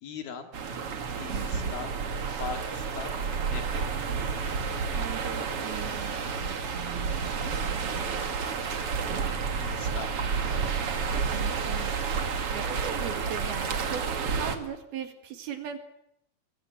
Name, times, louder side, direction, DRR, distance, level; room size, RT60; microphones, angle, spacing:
voice 1, 0.0-0.5 1.2-2.0 2.4-3.2 3.5-3.9 9.6-10.7 12.9-13.2, left 6 dB, 60° left, 6 dB, 3.9 m, -41 dB
sound 1, 0.5-14.6, right 5 dB, 45° right, 2.2 m, -30 dB
voice 2, 1.3-1.7 5.0-8.2 11.3-14.1 14.3-15.8, right 8 dB, 65° right, 7 dB, 3.8 m, -39 dB
23.5 x 22.0 x 8.9 m, 0.78 s
omnidirectional pair, 5.0 m